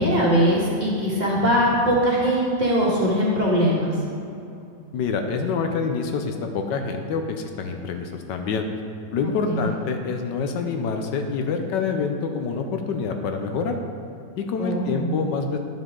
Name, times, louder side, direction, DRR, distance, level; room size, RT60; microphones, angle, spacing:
voice 1, 0.0-3.9 9.2-9.8 14.6-15.1, equal, 25° right, -6 dB, 1.7 m, -21 dB
voice 2, 4.9-8.7 9.1-13.8 14.4-15.6, left 5 dB, 75° left, 5 dB, 1.3 m, -26 dB
11.0 x 7.4 x 3.7 m, 2.7 s
omnidirectional pair, 1.9 m